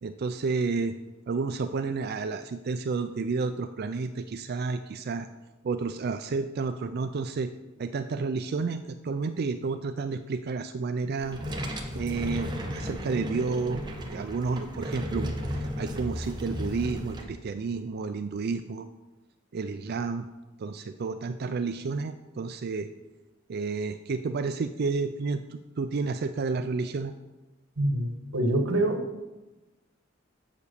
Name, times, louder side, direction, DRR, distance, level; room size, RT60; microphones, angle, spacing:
voice 1, 0.0-0.9 1.3-5.3 5.6-7.5 7.8-11.4 11.9-13.8 14.1-18.9 19.5-20.3 20.6-22.9 23.5-27.1, right 4 dB, 50° right, 9 dB, 0.4 m, -31 dB
sound 1, 11.2-17.2, equal, 20° right, 1.1 m, -34 dB
voice 2, 27.8-29.2, right 1 dB, 85° right, 6 dB, 1.4 m, -26 dB
7.3 x 6.9 x 6.6 m, 1.1 s
head